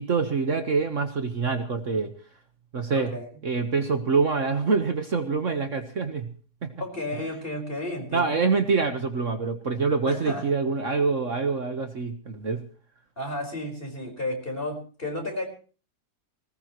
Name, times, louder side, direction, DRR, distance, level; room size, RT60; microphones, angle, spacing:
voice 1, 0.0-2.1 2.7-3.1 3.4-6.3 8.1-12.6, right 4 dB, 50° right, 7 dB, 1.6 m, -25 dB
voice 2, 6.8-8.6 10.1-10.5 13.2-15.4, left 1 dB, 30° left, 3 dB, 5.4 m, -32 dB
20.0 x 19.0 x 3.1 m, 0.38 s
omnidirectional pair, 1.8 m